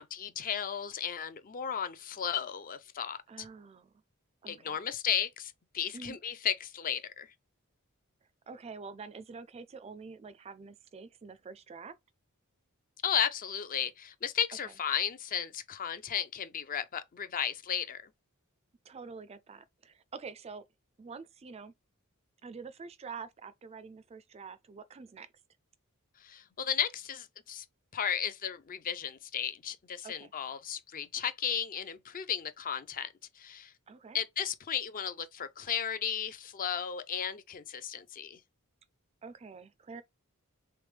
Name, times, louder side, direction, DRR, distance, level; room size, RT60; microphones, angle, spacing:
voice 1, 0.0-3.5 4.5-7.3 13.0-18.0 26.2-27.6 27.9-33.7 34.1-38.4, left 8 dB, 40° left, 0.5 m, -34 dB
voice 2, 3.3-3.9 4.4-4.9 5.9-6.2 8.5-12.0 18.8-20.6 21.0-21.7 22.4-25.3 30.0-30.3 33.9-34.2 39.2-40.0, right 5 dB, 30° right, 0.4 m, -46 dB
3.5 x 3.3 x 3.2 m
head